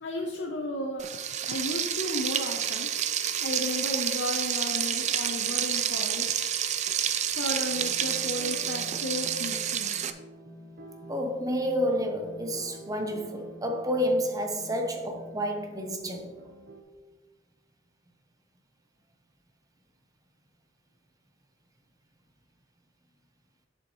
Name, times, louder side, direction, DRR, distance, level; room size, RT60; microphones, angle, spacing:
voice 1, 0.0-1.1 1.4-2.9 3.4-6.6 7.3-9.9, left 1 dB, 80° left, 0.8 m, -34 dB
Frying (food), 1.0-10.1, right 9 dB, 40° right, 0.4 m, -29 dB
sound 1, 7.7-16.8, right 1 dB, 55° right, 0.9 m, -47 dB
voice 2, 11.1-16.3, equal, 20° right, 0.8 m, -29 dB
7.7 x 7.2 x 3.1 m
head